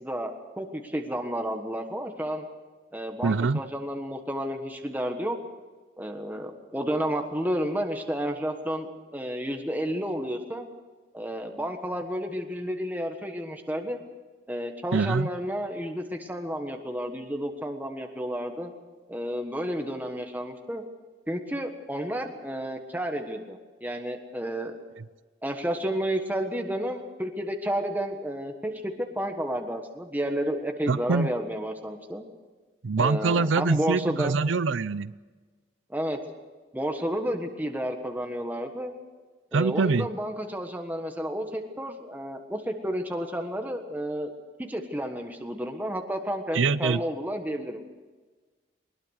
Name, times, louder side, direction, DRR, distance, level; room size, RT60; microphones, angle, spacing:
voice 1, 0.0-2.4 2.9-5.4 6.0-10.7 11.1-14.0 14.5-18.7 19.1-20.8 21.3-24.8 25.4-32.2 33.0-34.3 35.9-36.2 36.7-38.9 39.5-44.3 44.6-47.8, equal, 10° right, 4 dB, 1.4 m, -31 dB
voice 2, 3.2-3.6 14.9-15.3 30.9-31.3 32.8-35.1 39.5-40.1 46.5-47.0, right 4 dB, 85° right, 17 dB, 0.6 m, -24 dB
21.0 x 20.5 x 6.5 m, 1.3 s
head